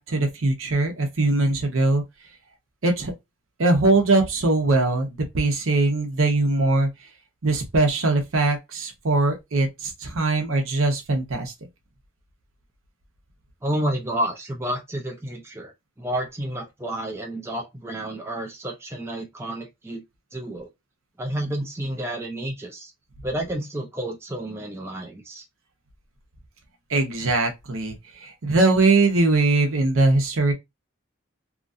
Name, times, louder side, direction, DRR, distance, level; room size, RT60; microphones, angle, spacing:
voice 1, 0.0-2.0 2.8-3.1 3.6-6.9 7.4-11.5 26.9-28.0 28.2-30.5, right 2 dB, 75° right, 0.8 m, -21 dB
voice 2, 13.6-15.7 16.0-20.0 20.3-20.7 21.2-22.9 23.2-25.4, right 1 dB, 10° right, 0.5 m, -30 dB
2.9 x 2.4 x 2.6 m
head